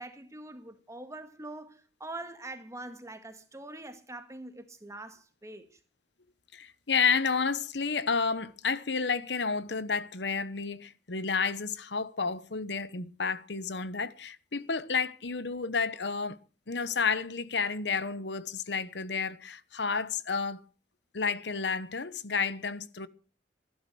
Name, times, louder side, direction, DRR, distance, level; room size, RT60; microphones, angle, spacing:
voice 1, 0.0-5.7, right 2 dB, 20° right, 1.9 m, -44 dB
voice 2, 6.5-16.4 16.7-20.6 21.1-23.1, left 5 dB, 75° left, 1.1 m, -31 dB
14.5 x 12.0 x 6.2 m
head